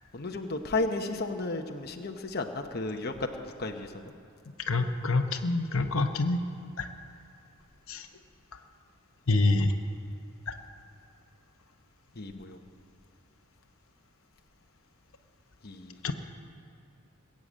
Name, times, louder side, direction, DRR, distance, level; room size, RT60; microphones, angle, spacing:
voice 1, 0.1-3.1 3.4-4.1 12.2-12.6 15.6-15.9, left 2 dB, 45° left, 3 dB, 0.9 m, -33 dB
voice 2, 4.7-6.4 6.8-6.9 7.9-8.1 9.3-9.7 10.5-10.6 16.0-16.1, left 2 dB, 75° left, 6 dB, 0.9 m, -26 dB
20.5 x 7.9 x 8.6 m, 2.6 s
head